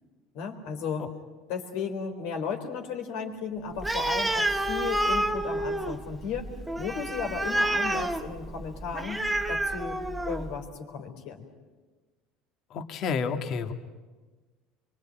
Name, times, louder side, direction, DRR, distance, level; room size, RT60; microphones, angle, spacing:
voice 1, 0.3-1.1 1.5-9.2 9.5-10.0 10.2-11.5, left 6 dB, 70° left, 4 dB, 4.0 m, -35 dB
Animal, 3.8-10.5, right 1 dB, 5° right, 1.6 m, -29 dB
voice 2, 12.7-13.7, left 5 dB, 50° left, 8 dB, 1.9 m, -30 dB
25.0 x 23.5 x 9.0 m, 1.3 s
supercardioid pair, 130°, 0 cm